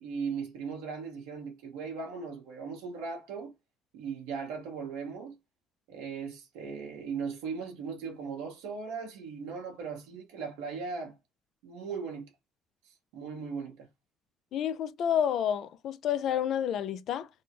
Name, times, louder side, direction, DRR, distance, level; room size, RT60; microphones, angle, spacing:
voice 1, 0.0-3.5 3.9-5.3 5.9-11.2 11.6-12.3 13.1-13.9, right 5 dB, 85° right, 1.1 m, -38 dB
voice 2, 14.5-17.3, left 9 dB, 65° left, 0.4 m, -29 dB
3.3 x 2.1 x 2.9 m
supercardioid pair, 65°, 0 cm